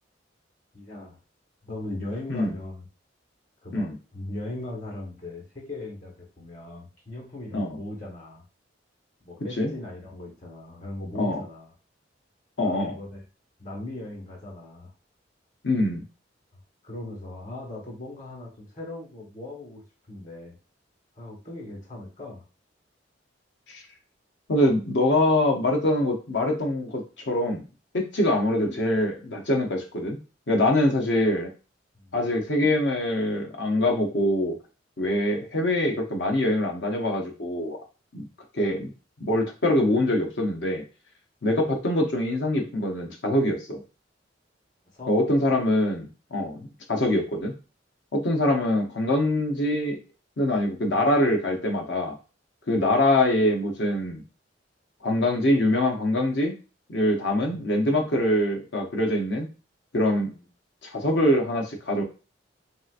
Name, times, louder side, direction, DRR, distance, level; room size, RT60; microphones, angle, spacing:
voice 1, 0.7-1.2 1.6-2.9 3.6-8.4 9.2-11.7 12.6-13.2 13.6-14.9 16.8-19.8 20.1-20.6 21.1-22.4 31.9-32.2 44.9-45.1 57.4-57.7 60.3-60.4, left 2 dB, 45° left, -1 dB, 1.4 m, -39 dB
voice 2, 12.6-12.9 15.6-16.0 23.7-23.8 24.5-27.6 27.9-30.2 30.5-31.5 32.1-34.5 35.0-37.8 38.1-38.2 38.5-38.9 39.2-40.8 41.4-43.8 45.1-47.5 48.1-50.0 50.4-52.2 52.7-54.2 55.0-56.5 56.9-59.5 59.9-60.3 60.8-62.0, left 1 dB, 70° left, 2 dB, 0.7 m, -24 dB
3.2 x 2.8 x 2.4 m, 0.33 s
head